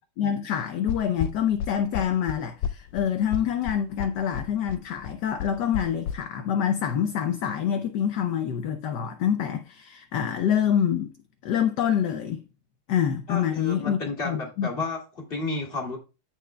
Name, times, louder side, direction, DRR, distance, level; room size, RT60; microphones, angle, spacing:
voice 1, 0.2-11.1 11.4-12.4 12.9-14.0 14.2-14.7, left 9 dB, 65° left, 1.1 m, -26 dB
sound 1, 0.9-6.2, left 8 dB, 90° left, 1.5 m, -31 dB
voice 2, 13.3-16.0, left 3 dB, 25° left, 2.3 m, -32 dB
15.0 x 5.0 x 2.2 m
omnidirectional pair, 2.4 m